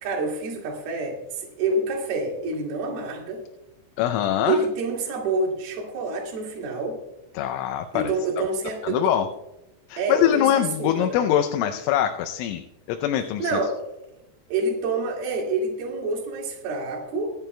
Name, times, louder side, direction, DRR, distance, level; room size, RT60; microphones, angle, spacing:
voice 1, 0.0-3.4 4.4-7.0 7.9-9.0 10.0-11.2 13.4-13.8 14.5-17.3, right 3 dB, 55° right, -1 dB, 3.7 m, -27 dB
voice 2, 4.0-4.6 7.3-8.1 8.8-9.3 9.9-13.6, left 11 dB, 85° left, 7 dB, 3.1 m, -23 dB
24.5 x 9.2 x 2.2 m, 0.91 s
omnidirectional pair, 5.6 m